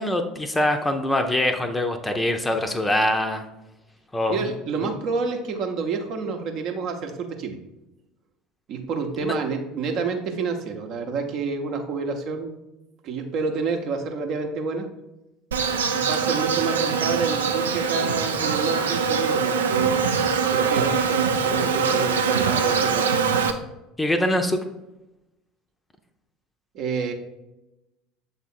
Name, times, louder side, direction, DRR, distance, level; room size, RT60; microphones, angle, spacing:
voice 1, 0.0-3.5 4.1-4.5 9.2-9.3 24.0-24.6, left 1 dB, 15° left, 6 dB, 0.6 m, -23 dB
voice 2, 4.3-7.6 8.7-12.5 13.0-14.9 15.9-19.9 20.5-23.1 26.7-27.1, right 4 dB, 50° right, 4 dB, 0.8 m, -28 dB
Insect, 15.5-23.5, right 6 dB, 75° right, 0.4 m, -23 dB
7.0 x 3.6 x 4.2 m, 0.95 s
figure-of-eight pair, 65°, 0 cm